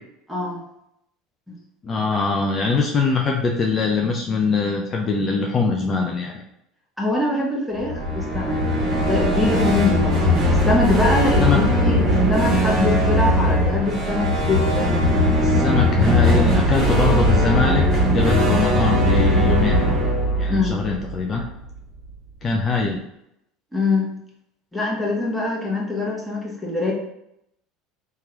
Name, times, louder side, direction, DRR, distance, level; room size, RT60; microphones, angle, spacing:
voice 1, 0.3-0.6 1.5-1.6 7.0-8.6 8.9-15.1 20.5-20.7 23.7-24.1 24.7-26.9, left 2 dB, ahead, -4 dB, 1.0 m, -23 dB
voice 2, 1.8-6.3 11.4-11.6 15.4-17.8 18.1-19.8 20.4-21.4 22.4-23.0, left 4 dB, 35° left, 1 dB, 0.4 m, -22 dB
sound 1, 7.8-21.8, equal, 45° right, 1.0 m, -19 dB
2.9 x 2.3 x 2.9 m, 0.79 s
hypercardioid pair, 70°, 0 cm